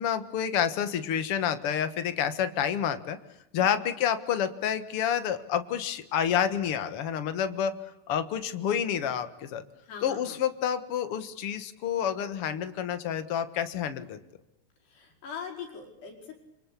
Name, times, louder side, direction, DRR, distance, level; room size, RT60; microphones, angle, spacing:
voice 1, 0.0-3.2 3.5-7.7 8.1-9.6 10.0-14.2, left 8 dB, 60° left, 11 dB, 1.5 m, -29 dB
voice 2, 3.6-3.9 9.8-10.4 14.8-16.4, left 6 dB, 75° left, 2 dB, 7.2 m, -42 dB
28.0 x 25.0 x 8.5 m, 0.87 s
omnidirectional pair, 4.8 m